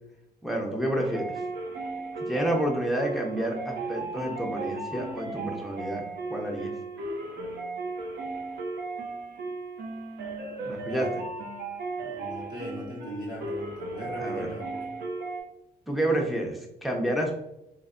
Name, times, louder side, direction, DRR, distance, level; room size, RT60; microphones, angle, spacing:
voice 1, 0.4-1.4 2.2-6.0 6.3-6.7 10.6-11.1 14.2-14.5 15.9-17.4, right 1 dB, ahead, 0 dB, 0.7 m, -29 dB
sound 1, 0.9-15.4, right 3 dB, 70° right, 0.7 m, -35 dB
voice 2, 12.0-15.0, equal, 25° right, -5 dB, 1.0 m, -39 dB
3.1 x 2.2 x 2.4 m, 0.85 s
cardioid pair, 80°, 17 cm